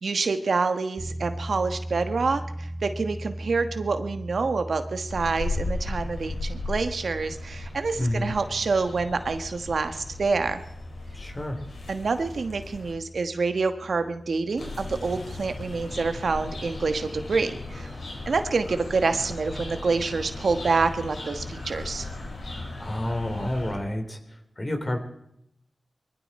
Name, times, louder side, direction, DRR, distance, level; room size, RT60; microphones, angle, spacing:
voice 1, 0.0-10.6 11.9-17.9 18.2-22.1, right 4 dB, 80° right, 8 dB, 1.3 m, -27 dB
sound 1, 1.0-17.3, right 1 dB, 35° right, 2.3 m, -40 dB
sound 2, 5.1-12.9 14.6-23.7, left 2 dB, 85° left, 5.0 m, -37 dB
voice 2, 8.0-8.3 11.1-11.6 22.8-24.2 24.6-25.0, left 1 dB, 35° left, 5 dB, 3.4 m, -29 dB
22.0 x 14.5 x 4.3 m, 0.78 s
cardioid pair, 45°, 0 cm